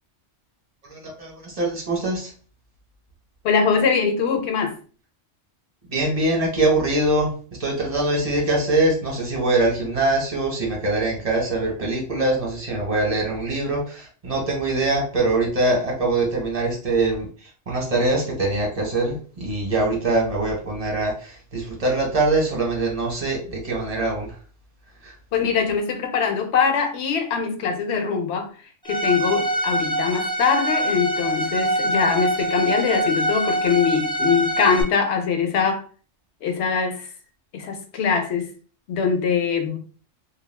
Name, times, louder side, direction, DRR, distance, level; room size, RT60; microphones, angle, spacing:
voice 1, 0.9-2.3 5.9-7.3 7.6-17.3 17.7-24.3 25.0-25.1, right 2 dB, 35° right, 0.9 m, -23 dB
voice 2, 3.4-4.8 25.3-28.5 28.8-35.8 36.4-37.1 37.5-38.5 38.9-39.8, left 6 dB, 70° left, 0.8 m, -22 dB
Bowed string instrument, 28.9-34.8, right 1 dB, 5° left, 0.3 m, -24 dB
2.3 x 2.2 x 3.2 m
omnidirectional pair, 1.2 m